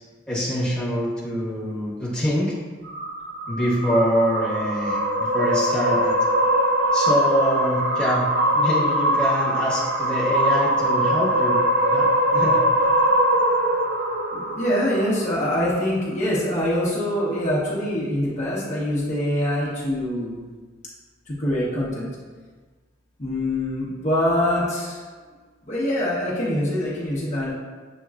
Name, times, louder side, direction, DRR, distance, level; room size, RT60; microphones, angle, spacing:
voice 1, 0.3-2.5 3.5-6.1 6.9-8.3 8.5-11.6 11.9-12.6, equal, 5° left, -8 dB, 1.1 m, -25 dB
sound 1, 2.8-15.3, right 1 dB, 55° right, 0.5 m, -22 dB
voice 2, 14.3-20.4 21.3-22.1 23.2-25.0 25.6-27.5, left 1 dB, 40° left, -7 dB, 0.9 m, -24 dB
7.1 x 2.9 x 2.4 m, 1.4 s
head